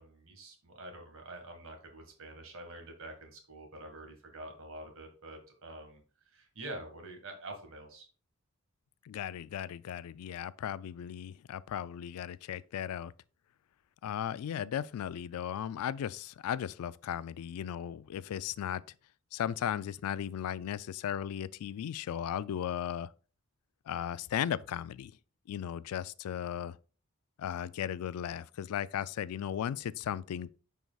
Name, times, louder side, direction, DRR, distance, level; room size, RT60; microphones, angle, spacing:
voice 1, 0.0-8.1, right 1 dB, 65° right, 1.6 m, -47 dB
voice 2, 9.1-13.1 14.0-18.8 19.3-23.1 23.9-25.1 25.5-26.8 27.4-30.5, left 9 dB, 80° left, 0.3 m, -36 dB
9.1 x 4.7 x 2.3 m
head